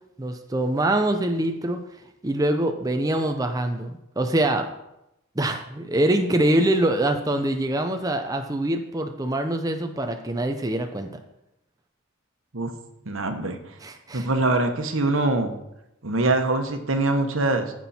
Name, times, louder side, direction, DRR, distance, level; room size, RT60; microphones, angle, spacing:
voice 1, 0.2-1.8 2.2-4.7 5.4-11.1 13.8-14.3, right 1 dB, 15° right, 5 dB, 0.6 m, -24 dB
voice 2, 13.1-13.6 14.1-15.6 16.0-17.7, right 2 dB, 70° right, 7 dB, 1.2 m, -23 dB
15.0 x 6.1 x 4.3 m, 0.88 s
head